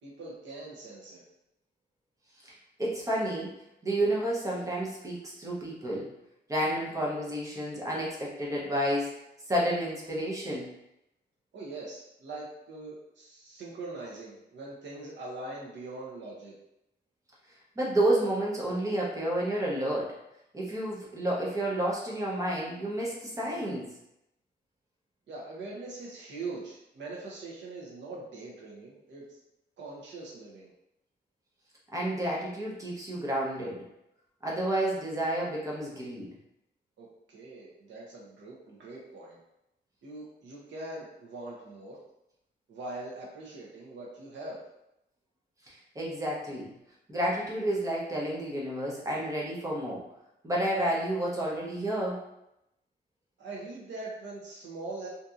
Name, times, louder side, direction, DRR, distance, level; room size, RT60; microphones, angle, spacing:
voice 1, 0.0-1.2 11.5-16.5 25.3-29.2 29.8-30.7 37.0-39.4 40.0-42.0 42.7-44.6 53.4-55.1, right 2 dB, 85° right, -4 dB, 0.7 m, -42 dB
voice 2, 2.4-3.5 3.8-6.1 6.5-9.2 9.5-10.7 17.8-20.2 20.5-23.9 31.9-33.9 34.4-36.3 45.7-46.7 47.1-50.1 50.4-52.2, right 1 dB, 20° right, -4 dB, 0.6 m, -30 dB
2.6 x 2.6 x 2.4 m, 0.84 s
wide cardioid pair, 180°, 18 cm